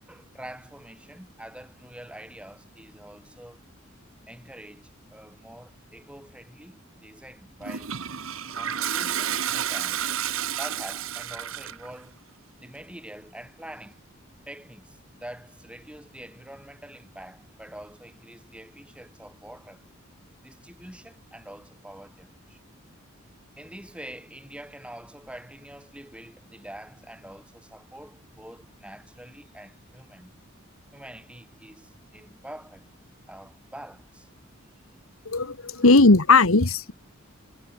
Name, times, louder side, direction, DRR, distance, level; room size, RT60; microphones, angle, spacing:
voice 1, 0.1-3.6 4.3-8.0 8.5-10.1 10.6-12.2 12.6-14.0 14.5-19.8 20.4-22.6 23.6-30.3 30.9-32.9 33.3-34.3 35.7-35.9, right 1 dB, 5° right, 5.3 m, -45 dB
Toilet flush, 7.6-11.9, right 9 dB, 80° right, 1.3 m, -30 dB
voice 2, 35.3-36.9, left 3 dB, 85° left, 1.7 m, -17 dB
head